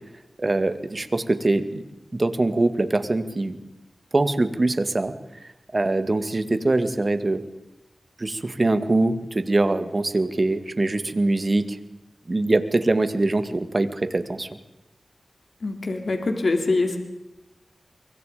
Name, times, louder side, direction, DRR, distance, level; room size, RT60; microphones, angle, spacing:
voice 1, 0.4-1.8 2.1-3.6 4.1-5.1 5.7-7.4 8.2-11.8 12.3-14.5, right 2 dB, 40° right, 10 dB, 2.1 m, -23 dB
voice 2, 15.6-17.0, left 3 dB, 60° left, 4 dB, 3.6 m, -24 dB
25.0 x 23.5 x 5.2 m, 0.96 s
cardioid pair, 50°, 0 cm